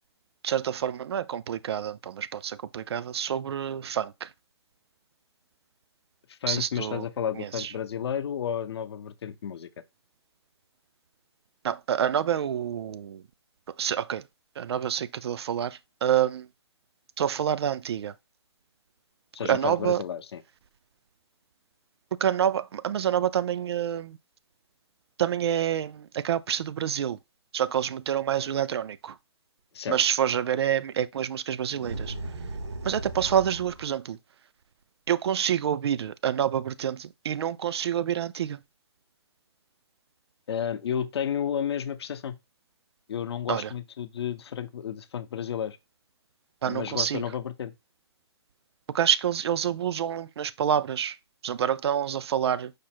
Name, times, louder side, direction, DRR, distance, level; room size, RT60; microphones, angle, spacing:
voice 1, 0.4-4.3 6.5-7.1 7.3-7.7 11.6-13.2 13.8-14.3 14.6-16.5 17.2-18.1 19.4-20.0 22.1-24.2 25.2-27.2 27.5-29.2 29.9-32.2 32.8-34.2 35.1-38.6 43.5-43.7 46.6-47.2 48.9-51.2 51.4-52.7, right 9 dB, 65° right, 0.4 m, -27 dB
voice 2, 6.3-9.7 19.3-20.4 29.7-30.0 40.5-42.4 43.1-45.8 46.6-47.7, left 8 dB, 65° left, 0.6 m, -32 dB
sound 1, 31.8-34.0, right 2 dB, 90° right, 1.0 m, -36 dB
5.0 x 2.0 x 4.3 m
hypercardioid pair, 145°, 14 cm